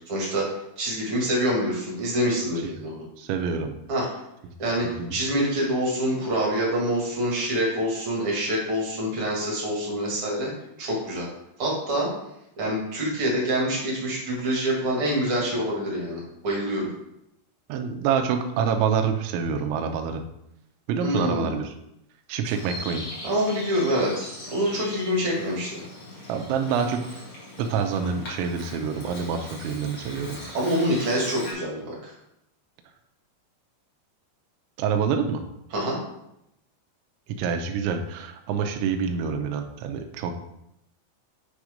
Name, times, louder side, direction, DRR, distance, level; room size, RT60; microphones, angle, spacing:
voice 1, 0.1-0.5 0.8-3.0 3.9-4.1 4.6-10.5 10.8-11.3 11.6-12.1 12.6-16.9 21.0-21.5 23.2-25.8 30.5-32.1 35.7-36.0, equal, 55° right, -3 dB, 1.6 m, -26 dB
voice 2, 3.2-3.8 5.0-5.1 17.7-20.2 20.9-21.7 22.3-23.1 26.3-27.1 27.6-30.4 34.8-35.4 37.4-40.3, right 6 dB, 85° right, 5 dB, 3.0 m, -26 dB
Bird vocalization bird call bird song, 22.4-31.5, left 1 dB, 40° left, 2.2 m, -40 dB
8.4 x 3.6 x 5.0 m, 0.81 s
omnidirectional pair, 5.3 m